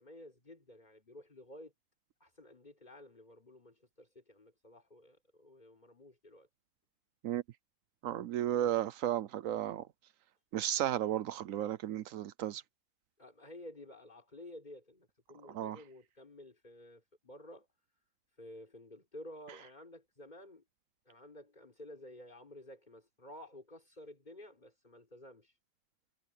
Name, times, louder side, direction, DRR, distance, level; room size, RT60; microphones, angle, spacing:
voice 1, 0.0-1.7 2.2-6.5 13.2-17.7 18.4-20.6 21.1-25.6, left 1 dB, 35° left, 4.5 m, -53 dB
voice 2, 8.0-9.8 10.5-12.6 15.5-15.8, right 12 dB, 80° right, 1.1 m, -34 dB
omnidirectional pair, 1.4 m